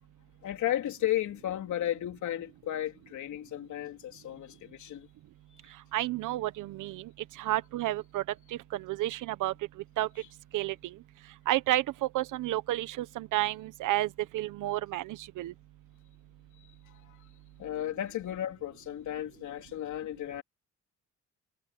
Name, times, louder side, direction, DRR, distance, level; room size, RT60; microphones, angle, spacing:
voice 1, 0.4-5.1 17.1-17.2 17.6-20.4, left 12 dB, 75° left, 3.7 m, -34 dB
voice 2, 5.9-7.1 7.4-8.2 8.7-9.5 10.0-10.1 10.5-11.0 11.5-15.5, right 15 dB, 85° right, 1.2 m, -31 dB
cardioid pair, 90°, 30 cm